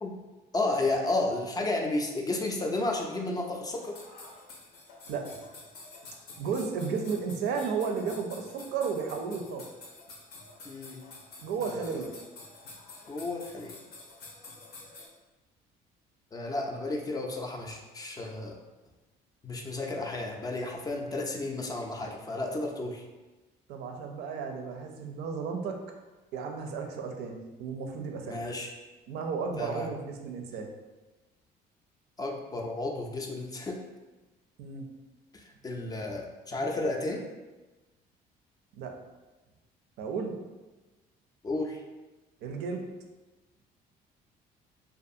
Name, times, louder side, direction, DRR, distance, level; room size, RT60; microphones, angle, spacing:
voice 1, 0.5-4.0 10.6-11.0 11.6-11.9 13.1-13.7 16.3-18.5 19.4-23.0 28.3-28.7 29.6-29.9 32.2-33.8 35.3-37.2 41.4-41.8, left 2 dB, 20° left, 1 dB, 0.3 m, -32 dB
sound 1, 3.7-15.1, left 3 dB, 75° left, 0.6 m, -49 dB
voice 2, 6.4-9.6 11.4-12.1 23.7-25.8 26.3-28.4 29.1-30.7 34.6-34.9 38.8-38.9 40.0-40.3 42.4-42.8, right 5 dB, 80° right, 3 dB, 0.4 m, -33 dB
2.4 x 2.3 x 2.6 m, 1.1 s
cardioid pair, 110°, 17 cm